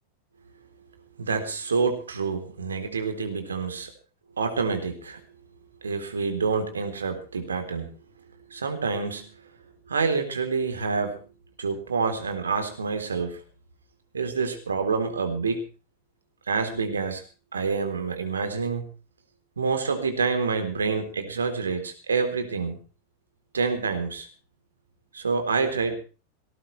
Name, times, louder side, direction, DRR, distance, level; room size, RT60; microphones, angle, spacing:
voice 1, 1.2-3.9 4.4-5.2 5.8-7.9 8.5-9.3 9.9-11.2 11.6-13.4 14.1-15.6 16.5-17.2 17.5-18.9 19.6-22.8 23.5-24.3 25.1-26.0, right 4 dB, 70° right, 7 dB, 3.6 m, -27 dB
19.0 x 18.0 x 3.3 m, 0.36 s
figure-of-eight pair, 90°, 0 cm